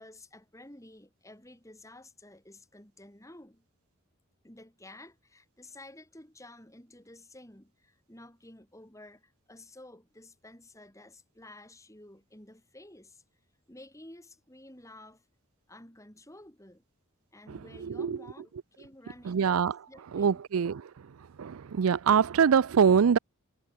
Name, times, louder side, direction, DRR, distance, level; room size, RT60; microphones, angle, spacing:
voice 1, 0.0-3.6 4.4-13.2 13.7-15.3 15.7-16.8 17.3-19.5 19.9-20.4, left 1 dB, 15° left, 4.1 m, -52 dB
voice 2, 17.9-18.2 19.3-19.8 20.1-20.9 21.4-23.2, right 7 dB, 75° right, 0.4 m, -24 dB
head